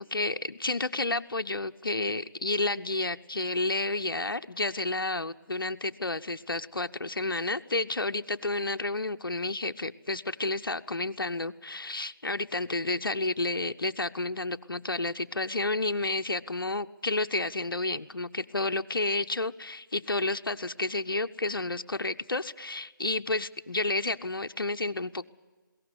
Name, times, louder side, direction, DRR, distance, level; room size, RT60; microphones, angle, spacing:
voice 1, 0.0-25.2, left 2 dB, 80° left, 8 dB, 0.7 m, -31 dB
21.5 x 17.5 x 8.0 m, 1.3 s
figure-of-eight pair, 155°, 12 cm